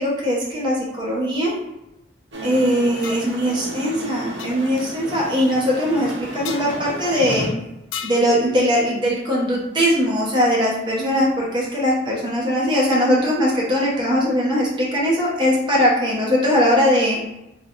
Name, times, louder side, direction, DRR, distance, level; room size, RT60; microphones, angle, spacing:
voice 1, 0.0-1.5 2.4-7.5 8.0-17.2, equal, 25° right, -4 dB, 1.0 m, -20 dB
sound 1, 2.3-7.5, right 1 dB, 70° right, 0.8 m, -33 dB
sound 2, 3.0-3.3 4.4-4.5 6.4-6.7 7.9-8.3, left 8 dB, 85° left, 0.3 m, -32 dB
3.3 x 2.3 x 4.0 m, 0.91 s
head